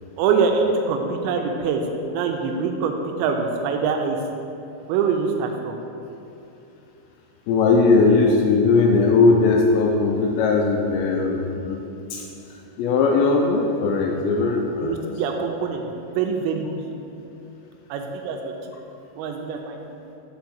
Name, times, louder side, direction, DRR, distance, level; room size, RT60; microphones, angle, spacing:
voice 1, 0.2-1.8 2.1-4.2 4.9-5.8 14.8-16.9 17.9-18.5 19.2-19.8, right 5 dB, 85° right, 3 dB, 2.7 m, -24 dB
voice 2, 7.5-11.8 12.1-12.2 12.8-15.0, left 4 dB, 85° left, 0 dB, 2.6 m, -19 dB
6.9 x 4.4 x 6.3 m, 2.8 s
omnidirectional pair, 5.6 m